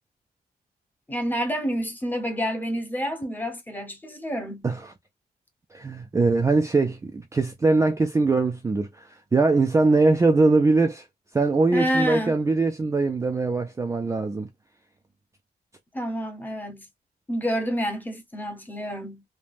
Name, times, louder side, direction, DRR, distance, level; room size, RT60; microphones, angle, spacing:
voice 1, 1.1-4.7 11.7-12.4 15.9-16.9 17.3-19.2, equal, 10° left, 0.8 m, -28 dB
voice 2, 5.7-11.1 11.3-14.5, right 3 dB, 15° right, 0.4 m, -22 dB
3.3 x 2.2 x 2.4 m
wide cardioid pair, 160°, 17 cm